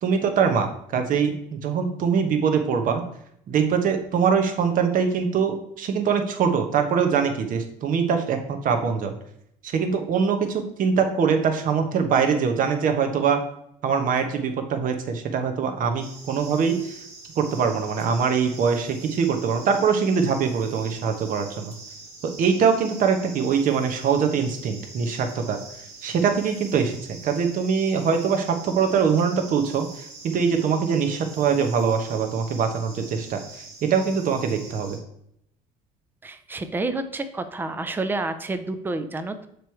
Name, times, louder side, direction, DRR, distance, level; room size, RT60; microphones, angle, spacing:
voice 1, 0.0-3.0 3.5-9.2 9.6-13.4 13.8-17.0 17.4-21.7 22.4-25.6 26.0-35.0, right 6 dB, 50° right, 6 dB, 1.0 m, -23 dB
sound 1, 16.0-35.0, right 3 dB, 80° right, 1.8 m, -44 dB
voice 2, 36.2-39.5, right 2 dB, 10° right, 9 dB, 0.5 m, -29 dB
6.6 x 3.2 x 4.5 m, 0.74 s
supercardioid pair, 100°, 18 cm